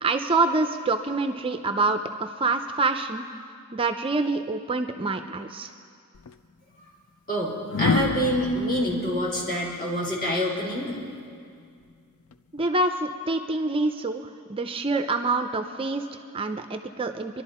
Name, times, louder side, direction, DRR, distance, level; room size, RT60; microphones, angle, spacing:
voice 1, 0.0-3.2 3.7-5.7 12.5-17.4, right 3 dB, 25° right, 7 dB, 0.5 m, -26 dB
sound 1, 6.1-6.3 7.7-10.8 12.3-12.6, left 4 dB, 70° left, 0.5 m, -29 dB
voice 2, 7.3-10.9, equal, 40° left, -5 dB, 3.7 m, -26 dB
26.0 x 11.5 x 4.2 m, 2.3 s
head